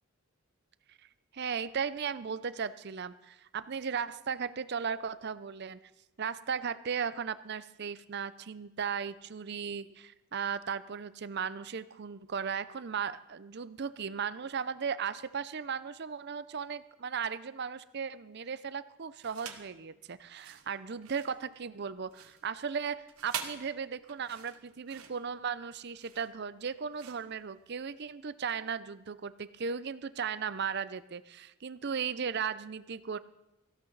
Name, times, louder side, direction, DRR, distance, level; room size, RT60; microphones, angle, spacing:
voice 1, 1.3-5.8 6.2-33.2, right 6 dB, 50° right, 15 dB, 0.5 m, -36 dB
sound 1, 19.2-19.7 20.3-28.1, right 7 dB, 85° right, 1.4 m, -45 dB
18.0 x 15.5 x 4.0 m, 0.93 s
head